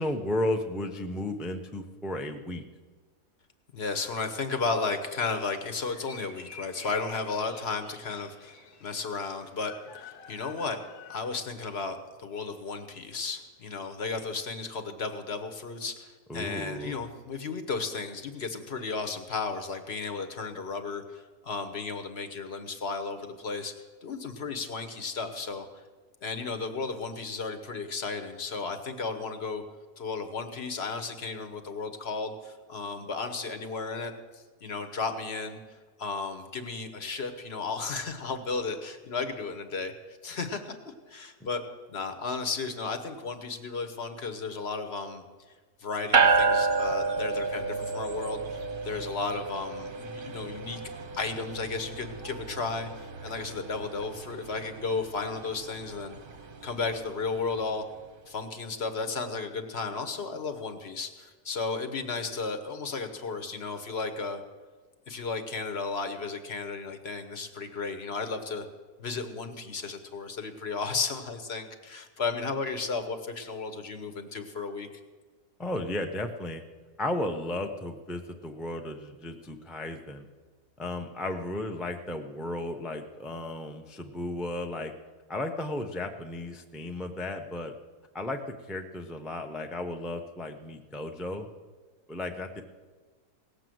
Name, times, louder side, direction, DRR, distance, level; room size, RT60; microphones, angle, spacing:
voice 1, 0.0-2.6 16.3-17.0 41.4-41.5 75.6-76.6 77.0-80.3 80.8-84.9 85.3-87.7 88.1-88.4 88.7-91.5 92.1-92.6, left 1 dB, ahead, 5 dB, 0.3 m, -34 dB
voice 2, 3.7-9.7 10.0-10.8 11.1-23.7 24.0-25.7 26.2-29.6 30.0-35.6 36.0-40.8 41.1-41.6 41.9-45.2 45.8-50.8 51.1-56.2 56.6-57.8 58.3-64.4 65.1-68.7 69.0-74.9, left 4 dB, 45° left, 8 dB, 1.1 m, -34 dB
sound 1, 3.8-11.3, left 5 dB, 70° left, 1.4 m, -50 dB
sound 2, 46.1-57.7, right 4 dB, 45° right, 0.8 m, -31 dB
17.5 x 6.7 x 7.7 m, 1.4 s
omnidirectional pair, 1.7 m